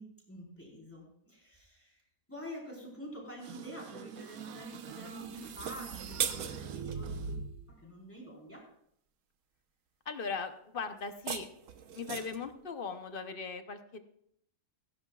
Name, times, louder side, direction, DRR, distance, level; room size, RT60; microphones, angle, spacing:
voice 1, 0.0-2.0 2.3-7.4 7.7-8.7, equal, 10° left, -3 dB, 4.2 m, -47 dB
sound 1, 3.4-7.8, right 5 dB, 90° right, 1.3 m, -43 dB
sound 2, 5.5-7.0 11.0-12.5, right 7 dB, 70° right, 1.2 m, -38 dB
voice 2, 10.0-11.5 11.9-14.0, left 5 dB, 45° left, 8 dB, 1.0 m, -39 dB
16.5 x 16.0 x 2.4 m, 0.70 s
omnidirectional pair, 1.5 m